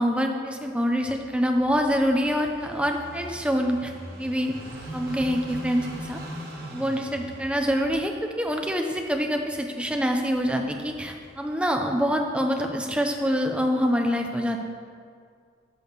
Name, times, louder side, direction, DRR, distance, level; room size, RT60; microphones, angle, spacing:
voice 1, 0.0-3.9 4.2-4.6 4.9-6.2 6.7-8.1 8.4-14.6, equal, 5° right, 3 dB, 0.6 m, -25 dB
Car passing by / Idling, 1.0-11.6, right 1 dB, 50° right, 1.7 m, -42 dB
8.4 x 6.3 x 6.6 m, 2.2 s
head